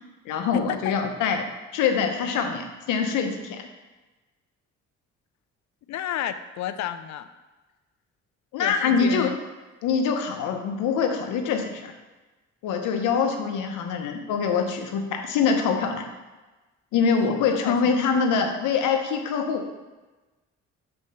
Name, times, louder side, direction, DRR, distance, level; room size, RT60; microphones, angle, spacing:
voice 1, 0.3-1.5 1.7-3.7 8.5-9.3 9.8-11.9 12.6-16.1 16.9-19.7, left 5 dB, 90° left, 5 dB, 0.8 m, -24 dB
voice 2, 5.9-7.3 8.6-9.4 17.3-17.9, left 10 dB, 65° left, 11 dB, 0.5 m, -31 dB
5.6 x 4.3 x 5.5 m, 1.2 s
cardioid pair, 90°, 30 cm